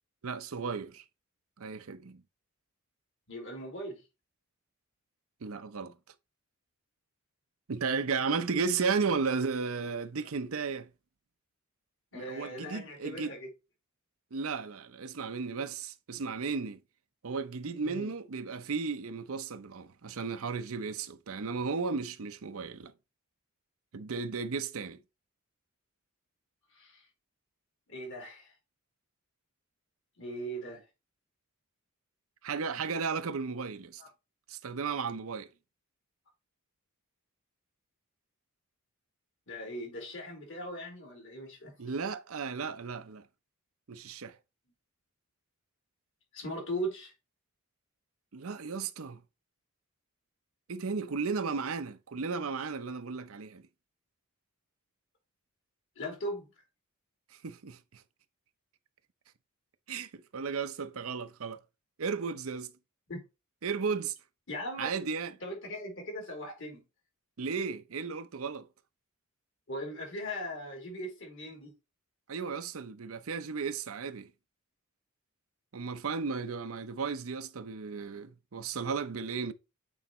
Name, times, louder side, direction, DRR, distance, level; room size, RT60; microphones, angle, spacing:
voice 1, 0.2-1.0 1.6-2.2 5.4-5.9 7.7-10.9 12.1-13.4 14.3-16.8 17.2-22.9 23.9-25.0 32.4-34.0 34.5-35.5 41.8-43.3 43.9-44.4 48.3-49.2 50.7-53.7 57.3-58.0 59.9-61.6 62.0-62.7 63.6-64.1 64.8-65.3 67.4-68.7 72.3-74.3 75.7-79.5, right 5 dB, 70° right, 0.7 m, -34 dB
voice 2, 3.3-4.0 12.1-13.5 17.8-18.1 26.7-27.0 27.9-28.5 30.2-30.8 34.0-34.1 39.5-41.7 46.3-47.1 55.9-56.5 63.1-63.2 64.5-64.9 65.4-66.8 69.7-71.7, equal, 60° left, 3.3 m, -39 dB
8.4 x 4.0 x 3.1 m
head